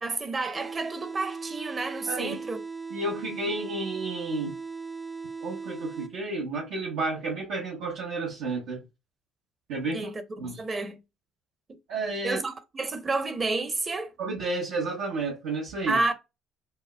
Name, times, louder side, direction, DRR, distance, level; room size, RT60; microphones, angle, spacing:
voice 1, 0.0-2.6 9.9-10.2 10.6-11.0 12.2-14.1 15.9-16.1, right 3 dB, 35° right, 0.8 m, -30 dB
sound 1, 0.5-6.5, right 4 dB, 5° right, 0.6 m, -38 dB
voice 2, 2.9-4.6 5.4-8.8 9.7-10.1 10.4-10.6 11.9-12.4 14.2-16.0, right 2 dB, 75° right, 0.9 m, -31 dB
5.2 x 2.0 x 2.2 m
hypercardioid pair, 65°, 0 cm